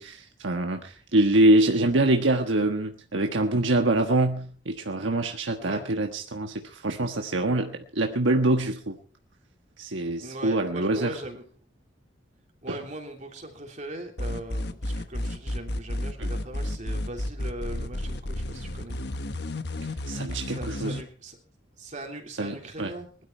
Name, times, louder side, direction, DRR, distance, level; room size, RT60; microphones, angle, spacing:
voice 1, 0.0-9.0 9.8-11.2 12.7-12.8 16.2-16.3 20.1-21.0 22.4-22.9, right 2 dB, 85° right, 4 dB, 1.4 m, -25 dB
voice 2, 10.2-11.4 12.6-19.0 20.4-21.4 21.8-23.2, right 1 dB, 40° right, 2 dB, 3.2 m, -40 dB
sound 1, 14.2-21.0, left 1 dB, 60° left, 1.3 m, -31 dB
20.5 x 12.5 x 4.5 m, 0.38 s
head